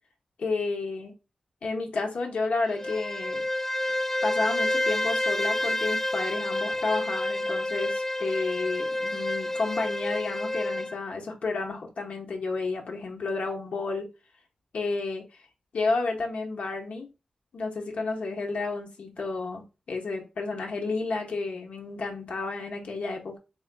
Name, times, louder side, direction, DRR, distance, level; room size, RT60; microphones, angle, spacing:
voice 1, 0.4-1.1 1.6-3.4 3.9-14.1 14.7-15.2 15.7-17.1 17.5-23.4, left 3 dB, 90° left, 0.9 m, -31 dB
Bowed string instrument, 2.6-11.0, left 1 dB, 15° left, 0.3 m, -29 dB
3.8 x 3.6 x 2.2 m
wide cardioid pair, 70°, 2 cm